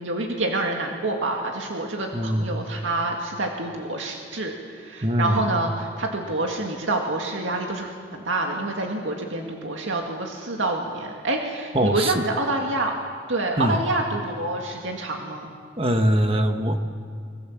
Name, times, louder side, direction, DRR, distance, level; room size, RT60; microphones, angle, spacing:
voice 1, 0.0-12.9 13.3-15.5, right 2 dB, 75° right, 1 dB, 2.2 m, -27 dB
voice 2, 2.1-2.5 5.0-5.4 11.7-12.2 13.6-13.8 15.8-16.8, right 1 dB, 30° right, 6 dB, 1.3 m, -22 dB
24.5 x 21.5 x 7.4 m, 2.2 s
head